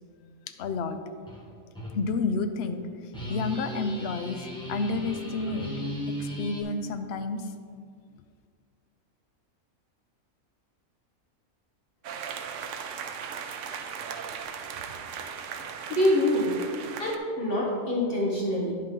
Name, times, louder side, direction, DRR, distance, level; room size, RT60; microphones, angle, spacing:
voice 1, 0.6-1.0 1.9-5.7 6.1-7.5, left 4 dB, 65° left, 9 dB, 0.7 m, -30 dB
sound 1, 1.3-1.4 1.8-2.0 3.1-6.6, equal, 5° left, 1.3 m, -36 dB
sound 2, 12.0-17.2, right 7 dB, 70° right, 0.9 m, -37 dB
voice 2, 15.9-16.6 17.0-18.7, left 1 dB, 45° left, -4 dB, 1.5 m, -25 dB
10.0 x 5.7 x 3.7 m, 2.1 s
omnidirectional pair, 1.4 m